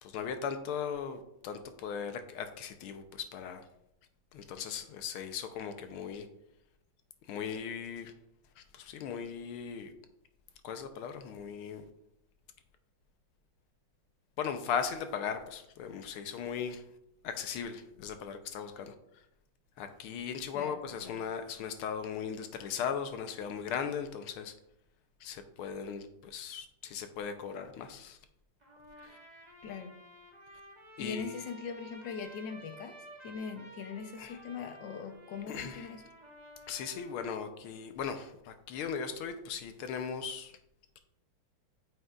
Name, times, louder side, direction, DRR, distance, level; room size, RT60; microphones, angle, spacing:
voice 1, 0.0-3.6 4.3-6.3 7.3-8.1 8.7-9.9 10.6-11.8 14.4-16.8 17.2-18.9 19.8-24.5 25.2-28.2 29.0-29.2 31.0-31.3 34.2-34.3 35.5-35.9 36.7-40.5, left 7 dB, 85° left, 8 dB, 1.6 m, -38 dB
voice 2, 20.5-21.2 29.6-30.0 31.0-33.0 33.2-36.1, left 5 dB, 70° left, 8 dB, 1.3 m, -41 dB
Trumpet, 28.6-37.2, right 1 dB, 20° right, 1.6 m, -53 dB
9.0 x 6.5 x 2.4 m, 0.81 s
omnidirectional pair, 2.3 m